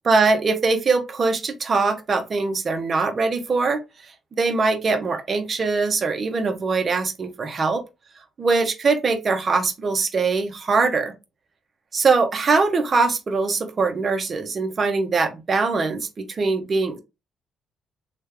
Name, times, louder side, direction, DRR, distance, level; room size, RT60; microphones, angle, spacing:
voice 1, 0.1-3.8 4.4-7.8 8.4-11.1 11.9-17.0, right 4 dB, 40° right, 6 dB, 0.8 m, -22 dB
3.2 x 2.4 x 3.3 m, 0.25 s
cardioid pair, 90°, 0 cm